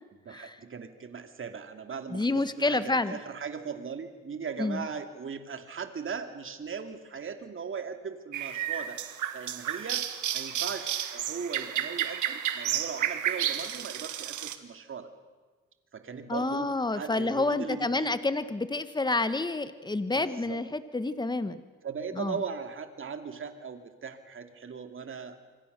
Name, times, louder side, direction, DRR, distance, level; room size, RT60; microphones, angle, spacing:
voice 1, 0.2-9.0 9.3-10.1 10.3-15.1 15.9-18.2 20.2-20.6 21.8-25.4, right 6 dB, 45° right, 7 dB, 2.6 m, -38 dB
voice 2, 2.1-3.2 4.6-4.9 16.3-21.6 22.1-22.3, left 2 dB, 15° left, 12 dB, 1.4 m, -29 dB
sound 1, 8.3-14.6, right 10 dB, 75° right, 1.7 m, -32 dB
27.5 x 24.0 x 6.8 m, 1.4 s
cardioid pair, 90°, 30 cm